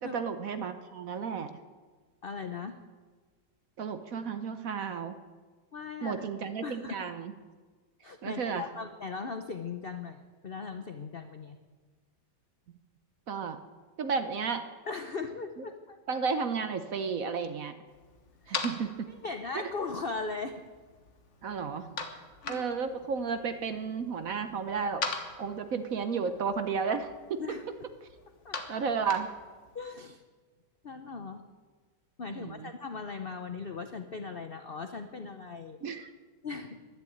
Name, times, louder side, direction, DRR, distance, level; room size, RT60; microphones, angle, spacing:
voice 1, 0.0-1.5 3.8-5.1 6.0-7.3 8.2-8.7 13.3-13.6 14.0-14.6 16.1-17.7 18.5-19.1 19.5-19.6 21.4-22.0 22.5-25.0 25.4-27.4 28.7-29.3 32.3-32.7 35.8-36.1, right 5 dB, 60° right, 9 dB, 1.0 m, -33 dB
voice 2, 2.2-2.8 5.7-6.3 6.6-7.0 8.0-11.6 14.9-16.0 18.4-18.6 19.1-20.6 22.4-22.6 27.4-27.7 28.4-28.8 29.7-30.2 30.8-31.4 32.2-35.8 36.4-36.8, left 4 dB, 65° left, 7 dB, 0.5 m, -38 dB
sound 1, 17.9-29.8, left 4 dB, 45° left, 1.4 m, -43 dB
11.5 x 11.0 x 8.5 m, 1.4 s
omnidirectional pair, 2.0 m